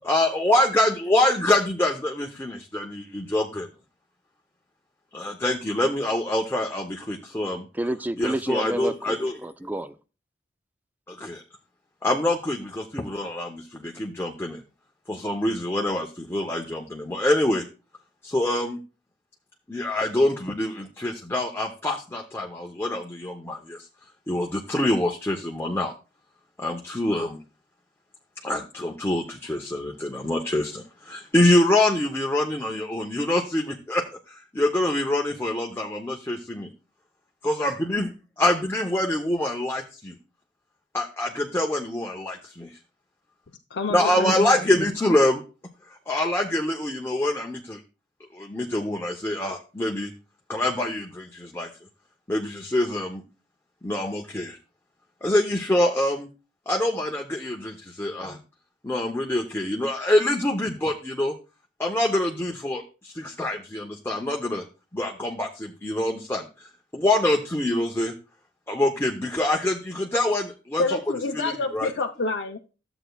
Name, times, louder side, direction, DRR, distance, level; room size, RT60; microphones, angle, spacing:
voice 1, 0.0-3.7 5.1-7.7 8.2-9.3 11.1-11.4 12.0-14.6 15.1-17.6 18.2-18.8 19.7-23.9 24.3-25.9 26.6-27.4 28.4-36.7 37.5-38.1 38.4-40.1 40.9-42.7 43.9-45.4 46.1-47.8 48.3-50.1 50.5-51.7 52.3-53.2 53.8-54.6 55.2-56.3 56.7-58.4 58.8-61.3 61.8-64.6 64.9-68.1 68.7-71.0 71.3-71.9, left 1 dB, 15° left, 1 dB, 0.8 m, -25 dB
voice 2, 7.7-10.0, right 1 dB, 10° right, 12 dB, 0.4 m, -30 dB
voice 3, 43.7-44.6 70.8-72.6, left 3 dB, 70° left, 2 dB, 0.6 m, -28 dB
13.0 x 7.9 x 2.3 m, 0.33 s
head